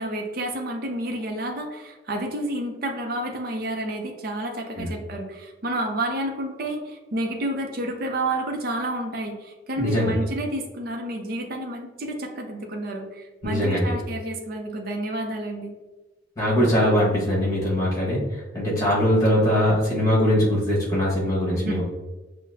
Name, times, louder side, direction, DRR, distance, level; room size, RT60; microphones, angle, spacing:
voice 1, 0.0-15.7 21.5-21.8, right 1 dB, 50° right, 2 dB, 0.5 m, -30 dB
voice 2, 9.8-10.2 13.4-13.9 16.4-21.8, equal, 15° left, -6 dB, 1.4 m, -22 dB
5.6 x 2.1 x 2.7 m, 1.1 s
head